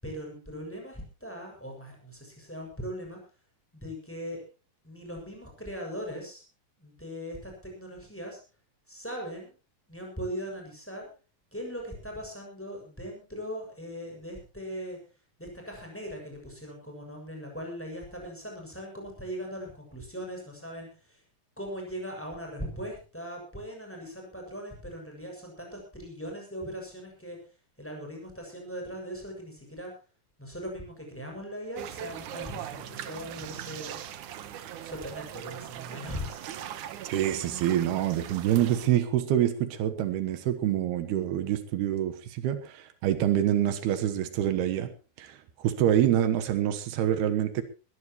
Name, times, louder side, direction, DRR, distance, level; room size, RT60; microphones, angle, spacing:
voice 1, 0.0-3.2 3.7-4.4 4.8-6.4 6.8-8.4 8.9-9.5 9.9-11.1 11.5-15.0 15.4-21.2 21.6-27.4 27.8-29.9 30.4-34.0 34.8-36.5, equal, 5° left, 0 dB, 6.6 m, -39 dB
sound 1, 31.7-38.9, right 10 dB, 65° right, 2.3 m, -40 dB
voice 2, 37.1-44.9 45.2-47.6, right 11 dB, 90° right, 9 dB, 3.2 m, -26 dB
21.0 x 15.0 x 3.1 m, 0.33 s
omnidirectional pair, 4.5 m